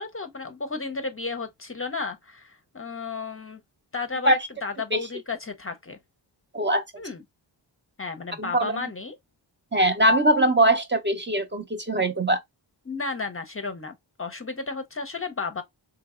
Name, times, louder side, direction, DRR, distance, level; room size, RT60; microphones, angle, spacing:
voice 1, 0.0-3.6 3.9-6.0 6.9-7.2 8.0-9.2 12.8-15.6, left 4 dB, 30° left, 0.6 m, -33 dB
voice 2, 8.4-8.7 9.7-12.4, right 1 dB, 25° right, 0.6 m, -21 dB
3.9 x 2.9 x 2.4 m
wide cardioid pair, 85°, 46 cm